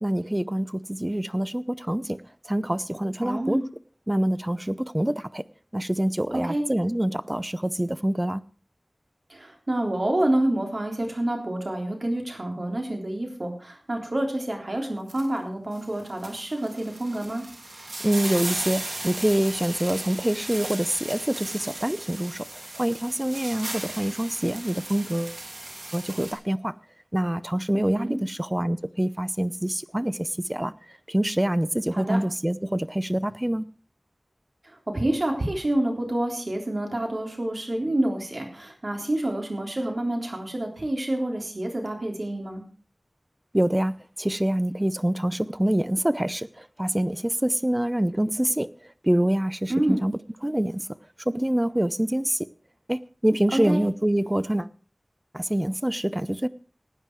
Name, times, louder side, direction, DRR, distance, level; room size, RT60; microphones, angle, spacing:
voice 1, 0.0-2.2 2.5-3.6 4.1-5.4 5.7-8.4 18.0-22.5 22.8-25.4 25.9-26.7 27.1-30.7 31.1-33.7 43.5-48.7 49.0-50.9 51.3-52.5 52.9-54.7 55.3-56.5, right 1 dB, 20° right, 0.6 m, -26 dB
voice 2, 3.2-3.6 6.3-6.6 9.3-17.4 27.7-28.2 31.9-32.2 34.6-42.6 49.7-50.0 53.5-53.8, right 1 dB, 60° right, 3.5 m, -28 dB
sound 1, 15.1-15.3 15.7-26.3, right 2 dB, 85° right, 3.2 m, -36 dB
16.0 x 9.5 x 4.7 m
wide cardioid pair, 55°, 0 cm